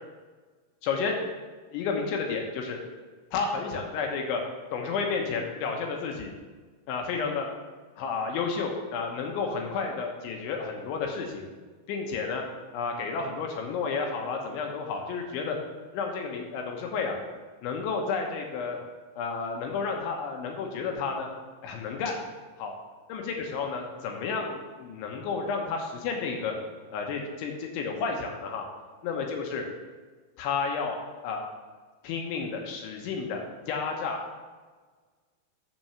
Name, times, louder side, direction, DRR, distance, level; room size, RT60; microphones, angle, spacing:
voice 1, 0.8-1.2 1.7-2.8 3.3-4.4 4.7-6.3 6.9-7.5 8.0-11.5 11.9-12.4 12.7-15.6 15.9-17.2 17.6-18.8 19.1-21.3 21.6-22.2 22.6-22.7 23.1-26.5 26.9-28.7 29.0-29.6 30.4-31.4 32.0-33.4 33.7-34.4, left 5 dB, 75° left, 2 dB, 3.1 m, -31 dB
7.4 x 6.1 x 6.8 m, 1.4 s
omnidirectional pair, 5.9 m